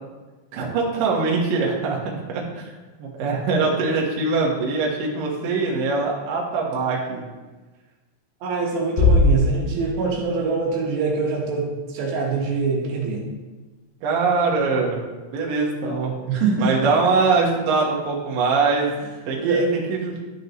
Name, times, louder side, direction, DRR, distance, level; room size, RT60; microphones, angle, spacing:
voice 1, 0.5-2.7 3.0-7.2 14.0-15.0 15.3-16.1 16.6-18.9 19.3-20.1, right 4 dB, 65° right, -3 dB, 2.7 m, -22 dB
voice 2, 8.4-13.3 16.3-16.9 19.4-19.7, right 4 dB, 80° right, -2 dB, 3.4 m, -24 dB
Bass drum, 9.0-10.4, left 2 dB, 80° left, 3.1 m, -19 dB
12.0 x 6.2 x 3.0 m, 1.2 s
omnidirectional pair, 4.9 m